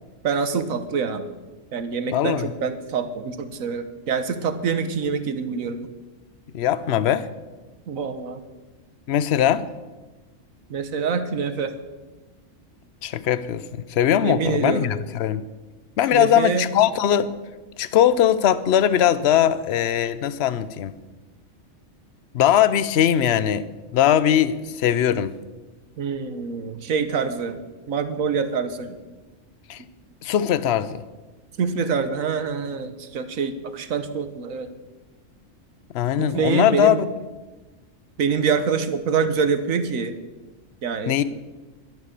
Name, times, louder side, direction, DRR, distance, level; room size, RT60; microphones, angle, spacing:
voice 1, 0.2-1.2 1.7-5.9 7.9-8.4 10.7-11.7 14.2-14.9 16.1-16.7 26.0-27.6 27.9-29.0 31.6-34.7 36.2-37.0 38.2-40.2 40.8-41.2, right 5 dB, 90° right, 1.5 m, -25 dB
voice 2, 2.1-2.5 6.5-7.3 9.1-9.6 13.0-15.4 16.0-17.3 17.8-20.9 22.3-23.7 23.9-25.3 29.7-29.8 30.2-31.0 35.9-37.0 41.1-41.2, left 10 dB, 60° left, 0.9 m, -20 dB
12.0 x 11.0 x 6.8 m
omnidirectional pair, 1.4 m